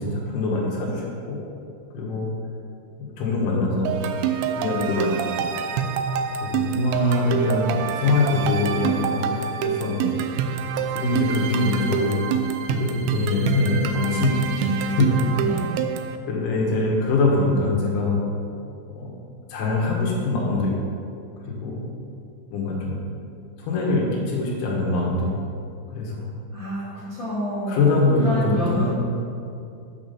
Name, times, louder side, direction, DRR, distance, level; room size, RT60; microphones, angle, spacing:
voice 1, 0.0-1.4 1.9-2.3 3.2-5.3 6.4-10.2 10.9-12.2 12.7-15.2 16.3-18.2 19.0-19.1 19.5-20.7 21.5-21.9 22.5-23.0 23.6-25.3 25.9-26.3 27.7-28.9, left 2 dB, 75° left, -3 dB, 3.8 m, -23 dB
sound 1, 3.9-16.2, right 8 dB, 80° right, 2.7 m, -26 dB
voice 2, 26.5-28.9, equal, 50° left, -10 dB, 1.4 m, -28 dB
8.3 x 6.1 x 6.9 m, 2.6 s
omnidirectional pair, 5.5 m